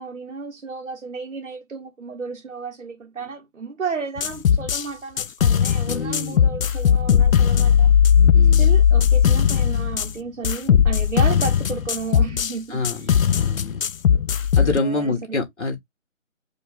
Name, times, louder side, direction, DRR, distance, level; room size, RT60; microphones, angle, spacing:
voice 1, 0.0-7.9 8.6-13.2 14.6-15.2, right 4 dB, 75° right, 1.0 m, -33 dB
sound 1, 4.2-4.8 5.2-10.1 10.4-12.5 12.8-14.8, left 8 dB, 80° left, 0.5 m, -18 dB
voice 2, 5.9-6.5 8.3-8.7 12.7-13.8 14.5-15.8, left 3 dB, 60° left, 1.6 m, -27 dB
4.6 x 2.5 x 3.6 m
figure-of-eight pair, 160°, 40 cm